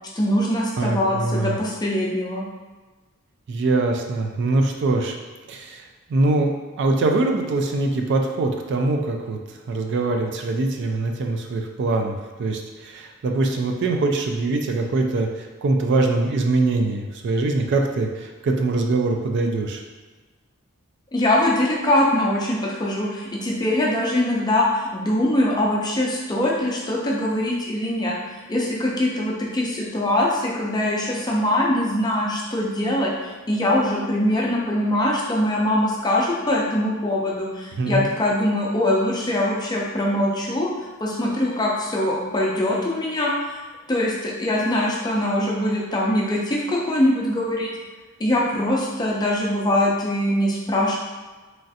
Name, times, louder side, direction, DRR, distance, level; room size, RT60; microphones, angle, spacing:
voice 1, 0.1-2.4 21.1-40.7 41.0-43.6 43.9-47.7 48.2-50.9, left 1 dB, 20° left, -3 dB, 0.4 m, -22 dB
voice 2, 0.8-1.6 3.5-5.2 5.5-19.8 37.8-38.1, right 2 dB, 55° right, 3 dB, 0.3 m, -23 dB
3.1 x 2.5 x 2.6 m, 1.3 s
head